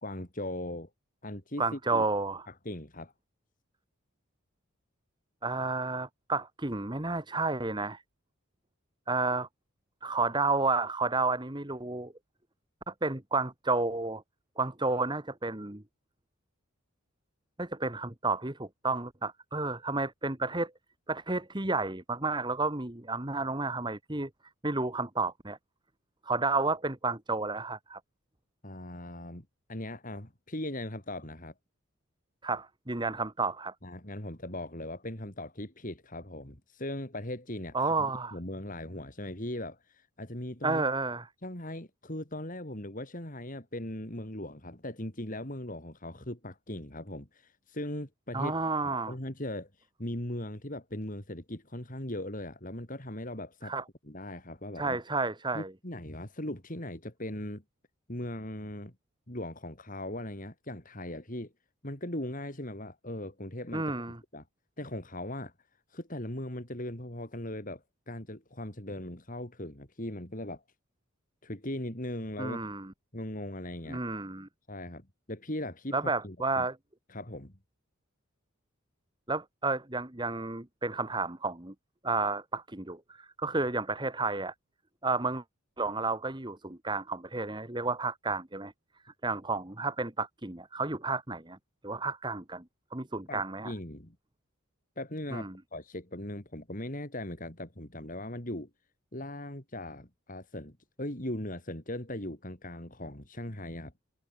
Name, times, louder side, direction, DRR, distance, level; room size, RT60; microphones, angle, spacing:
voice 1, 0.0-0.9 1.2-2.0 2.5-3.1 28.6-31.5 33.8-40.8 41.4-48.5 48.8-53.7 54.0-55.0 55.5-57.6 58.1-58.9 59.3-61.5 61.8-64.0 64.3-64.5 64.8-65.5 65.9-70.6 71.4-72.6 73.1-74.0 74.7-76.0 76.2-76.7 77.1-77.5 93.3-94.2 95.0-98.7 99.1-103.9, left 1 dB, 35° left, 3.7 m, -39 dB
voice 2, 1.6-2.5 5.4-8.0 9.1-9.5 10.0-12.1 12.9-14.2 14.6-15.8 17.6-20.7 21.1-24.3 24.6-25.6 26.2-28.0 32.4-33.7 37.7-38.4 40.6-41.3 48.3-49.1 53.6-53.8 54.7-55.7 63.7-64.2 72.4-72.9 73.9-74.5 75.9-76.8 79.3-81.7 82.0-84.5 85.0-85.4 85.8-88.7 89.2-91.6 91.8-92.6 92.9-93.7 95.3-95.5, right 3 dB, 20° right, 1.5 m, -31 dB
head